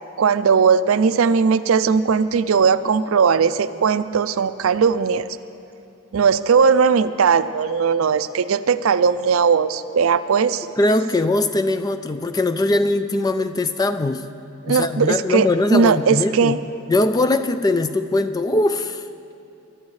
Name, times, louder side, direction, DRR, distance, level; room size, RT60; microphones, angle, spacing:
voice 1, 0.2-5.3 6.1-10.7 14.6-16.6, right 6 dB, 70° right, 13 dB, 0.4 m, -18 dB
voice 2, 10.8-14.2 14.7-16.6 16.9-19.0, left 2 dB, 15° left, 10 dB, 0.3 m, -21 dB
22.0 x 11.5 x 3.2 m, 2.7 s
head